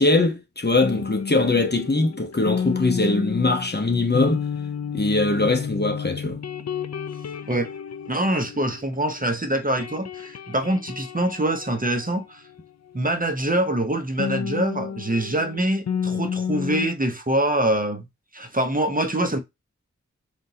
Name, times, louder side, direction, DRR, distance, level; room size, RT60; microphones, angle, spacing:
voice 1, 0.0-4.4 4.9-6.4, left 2 dB, 35° left, 1.0 m, -21 dB
sound 1, 0.8-9.3 9.6-13.0 14.2-16.9, left 7 dB, 60° left, 0.4 m, -31 dB
voice 2, 8.1-12.4 12.9-18.1 18.3-19.4, right 1 dB, 30° right, 0.9 m, -24 dB
3.9 x 3.4 x 2.8 m
wide cardioid pair, 50°, 30 cm